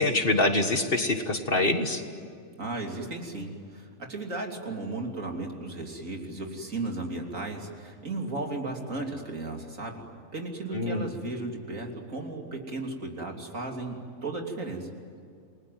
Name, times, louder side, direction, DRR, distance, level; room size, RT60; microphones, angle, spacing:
voice 1, 0.0-2.0 10.7-11.1, left 2 dB, 45° left, 7 dB, 1.8 m, -25 dB
voice 2, 2.6-10.0 10.3-14.9, right 2 dB, 70° right, 2 dB, 3.6 m, -35 dB
29.0 x 20.5 x 9.4 m, 2.4 s
omnidirectional pair, 1.4 m